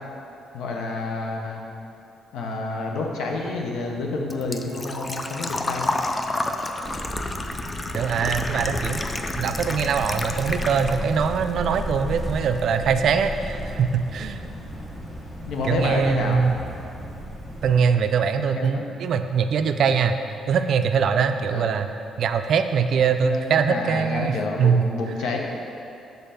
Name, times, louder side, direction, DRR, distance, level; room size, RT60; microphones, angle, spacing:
voice 1, 0.5-1.6 2.3-5.9 15.4-16.4 18.5-19.0 21.5-21.8 23.2-25.4, left 3 dB, 80° left, 1 dB, 0.8 m, -29 dB
Engine / Trickle dribble / Fill (with liquid), 3.3-11.3 11.6-12.6 12.9-13.0 14.9-15.0 15.2-15.5 15.9-16.0 16.2-16.3, left 2 dB, 25° left, 0.4 m, -30 dB
sound 1, 6.8-17.8, equal, 5° left, 0.9 m, -34 dB
voice 2, 7.9-9.0 9.4-14.4 15.6-16.6 17.6-20.1 20.5-21.9 22.2-24.8, right 6 dB, 70° right, 8 dB, 0.3 m, -22 dB
5.5 x 3.8 x 5.7 m, 2.7 s
cardioid pair, 90°, 0 cm